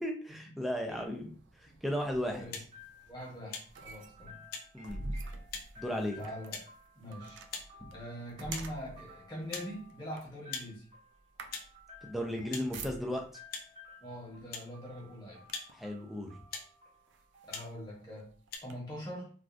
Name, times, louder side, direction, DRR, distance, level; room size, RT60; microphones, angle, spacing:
voice 1, 0.0-1.3 1.6-2.5 4.7-5.1 5.8-6.2 7.8-7.9 12.0-13.3 15.7-16.3, equal, ahead, 1 dB, 0.4 m, -35 dB
sound 1, 0.6-13.4 14.3-14.5 14.9-15.9 16.5-16.6 17.1-18.7, right 3 dB, 85° right, 0.4 m, -48 dB
voice 2, 2.3-2.6 3.1-4.4 5.9-6.6 6.9-7.4 7.9-10.8 14.0-15.4 17.5-18.3 18.6-19.3, equal, 25° left, -4 dB, 1.0 m, -43 dB
sound 2, 2.5-2.7 3.5-3.7 4.5-4.7 5.5-5.7 6.5-6.7 7.5-7.7 8.5-8.7 9.5-9.7 10.5-10.7 11.5-11.7 12.5-12.7 13.5-13.7 14.5-14.7 15.5-15.7 16.5-16.7 17.5-17.7 18.5-18.6, left 5 dB, 55° left, 0.5 m, -41 dB
sound 3, 2.7-18.5, left 2 dB, 35° right, 0.7 m, -57 dB
3.3 x 2.4 x 2.5 m, 0.41 s
head